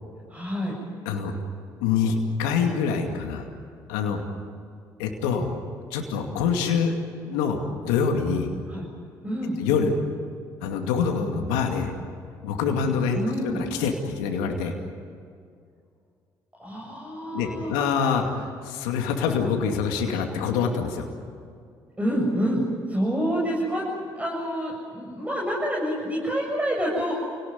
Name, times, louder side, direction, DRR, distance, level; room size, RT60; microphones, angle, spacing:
voice 1, 0.3-0.7 8.7-8.8 9.2-9.6 13.2-13.6 16.6-17.7 22.0-22.6 22.9-23.8 24.1-27.1, equal, 15° right, -3 dB, 7.4 m, -27 dB
voice 2, 1.8-3.4 3.9-4.2 5.0-5.5 5.9-7.0 7.2-8.5 9.6-9.9 10.6-11.9 12.4-14.7 17.3-21.1, left 6 dB, 85° left, 3 dB, 2.5 m, -25 dB
28.5 x 18.5 x 9.6 m, 2.3 s
hypercardioid pair, 60°, 10 cm